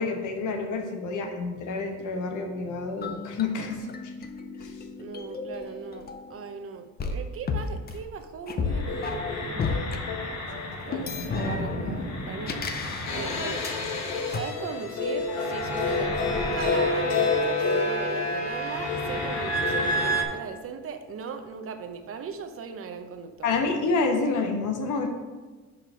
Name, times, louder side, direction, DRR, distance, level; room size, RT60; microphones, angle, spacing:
voice 1, 0.0-4.1 4.6-4.8 10.6-10.7 23.4-25.1, left 3 dB, 90° left, 3 dB, 1.1 m, -28 dB
sound 1, 3.0-6.5 7.0-10.0 10.9-13.8 14.3-14.4, left 4 dB, 35° left, 0.6 m, -33 dB
voice 2, 5.0-10.0 10.8-13.7 14.3-23.6, right 6 dB, 50° right, 7 dB, 0.7 m, -38 dB
sound 2, 8.6-20.2, left 2 dB, 65° left, 1.1 m, -28 dB
5.8 x 5.0 x 5.6 m, 1.3 s
cardioid pair, 140°, 30 cm